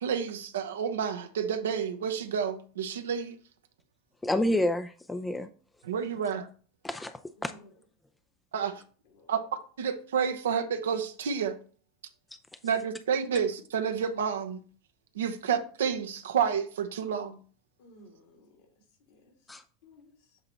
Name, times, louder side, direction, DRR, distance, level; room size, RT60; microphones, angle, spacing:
voice 1, 0.0-3.4 5.9-6.5 8.5-8.8 9.3-9.4 9.8-11.6 12.6-14.6 15.1-17.4, right 7 dB, 75° right, 0.8 m, -30 dB
voice 2, 4.2-5.5 6.8-7.5 19.5-19.6, left 1 dB, 10° left, 0.5 m, -29 dB
voice 3, 7.4-7.7 8.7-9.5 17.8-18.7 19.0-19.3 19.8-20.4, left 1 dB, 65° left, 2.4 m, -57 dB
7.9 x 3.8 x 4.3 m
figure-of-eight pair, 85°, 0 cm